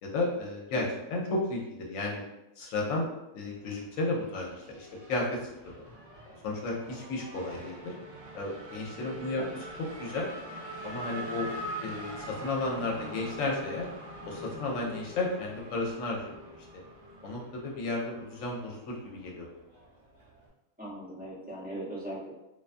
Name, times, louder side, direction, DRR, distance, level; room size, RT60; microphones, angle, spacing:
voice 1, 0.0-0.9 1.1-2.2 2.6-3.1 3.3-5.8 6.4-7.9 8.3-9.4 10.0-10.3 10.8-11.5 11.8-13.9 14.2-16.6 17.2-19.5, left 2 dB, 75° left, -1 dB, 1.0 m, -33 dB
Race car auto racing / Accelerating revving vroom, 3.5-20.5, right 1 dB, 55° right, 1.1 m, -44 dB
voice 2, 20.8-22.3, right 1 dB, 10° right, -9 dB, 0.6 m, -39 dB
2.6 x 2.3 x 2.5 m, 0.93 s
omnidirectional pair, 1.5 m